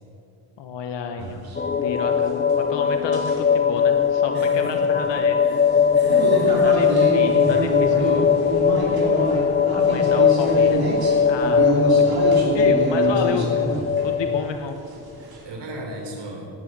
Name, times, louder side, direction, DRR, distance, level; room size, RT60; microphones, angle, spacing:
voice 1, 0.6-1.5 1.7-5.4 6.6-6.9 7.1-8.4 9.7-12.1 12.5-13.7 14.0-14.8, left 5 dB, 90° left, 6 dB, 1.0 m, -30 dB
sound 1, 1.2-1.6 3.1-3.5 5.7-14.4 14.9-15.4, right 2 dB, 60° right, 3.3 m, -26 dB
sound 2, 1.6-14.5, left 6 dB, 25° left, 0.5 m, -20 dB
voice 2, 4.3-5.1 5.4-7.1 15.2-16.6, right 1 dB, 75° right, 0 dB, 3.8 m, -36 dB
17.5 x 10.5 x 6.1 m, 2.9 s
cardioid pair, 90°, 42 cm